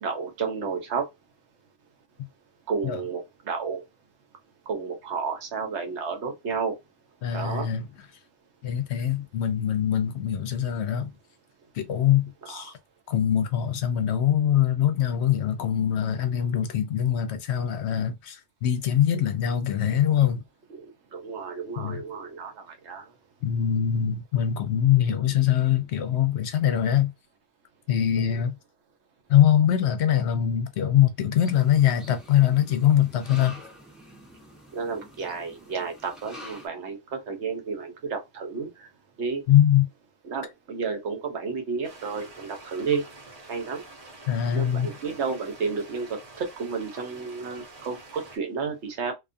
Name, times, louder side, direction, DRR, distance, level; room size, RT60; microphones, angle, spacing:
voice 1, 0.0-1.0 2.7-3.8 4.7-6.8 7.3-7.7 12.5-12.7 20.7-23.0 28.1-28.4 34.7-38.9 39.2-39.4 40.2-43.0 43.5-43.8 44.5-49.1, right 5 dB, 70° right, 1.0 m, -31 dB
voice 2, 7.2-7.9 8.6-11.1 11.7-12.8 13.1-20.4 21.8-22.0 23.4-27.1 27.9-28.5 29.3-33.6 39.5-39.9 44.3-44.9, left 10 dB, 70° left, 0.8 m, -23 dB
sound 1, 31.4-36.7, left 1 dB, ahead, 0.5 m, -47 dB
sound 2, 41.8-48.4, right 2 dB, 40° right, 0.7 m, -47 dB
2.4 x 2.3 x 2.5 m
omnidirectional pair, 1.2 m